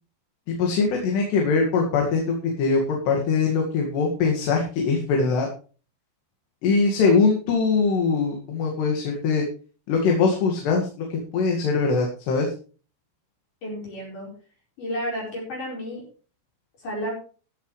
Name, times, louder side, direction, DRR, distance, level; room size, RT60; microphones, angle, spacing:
voice 1, 0.5-2.2 2.6-5.5 6.6-9.4 9.9-10.9 11.3-12.5, left 4 dB, 85° left, 1 dB, 4.3 m, -22 dB
voice 2, 13.6-14.3 14.8-16.0 16.8-17.1, equal, 50° left, -3 dB, 6.1 m, -31 dB
13.5 x 13.5 x 3.3 m, 0.37 s
omnidirectional pair, 4.7 m